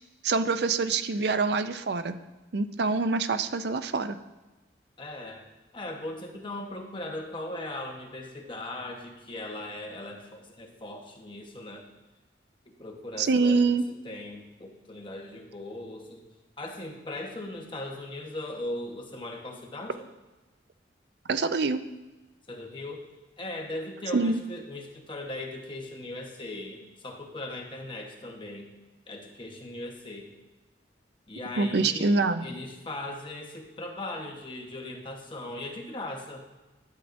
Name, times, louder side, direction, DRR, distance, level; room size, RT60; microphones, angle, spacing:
voice 1, 0.2-2.2 2.5-4.2 13.2-13.8 21.3-21.8 24.1-24.4 31.6-32.4, right 4 dB, 65° right, 11 dB, 0.5 m, -25 dB
voice 2, 5.0-5.4 5.7-11.9 12.7-16.2 16.6-20.0 22.5-23.1 23.4-28.7 29.1-30.3 31.3-36.4, left 1 dB, 25° left, 1 dB, 1.2 m, -39 dB
12.0 x 7.3 x 2.6 m, 1.1 s
head